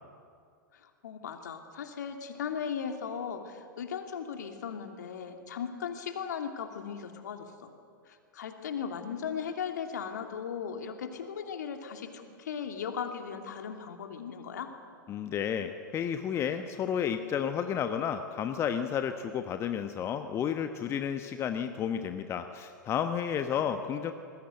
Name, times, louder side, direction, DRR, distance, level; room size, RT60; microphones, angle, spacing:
voice 1, 0.7-7.7 8.1-14.7 23.5-23.8, left 7 dB, 60° left, 5 dB, 2.8 m, -37 dB
voice 2, 15.1-24.1, left 8 dB, 25° left, 8 dB, 1.1 m, -32 dB
28.0 x 20.5 x 7.9 m, 2.3 s
figure-of-eight pair, 100°, 11 cm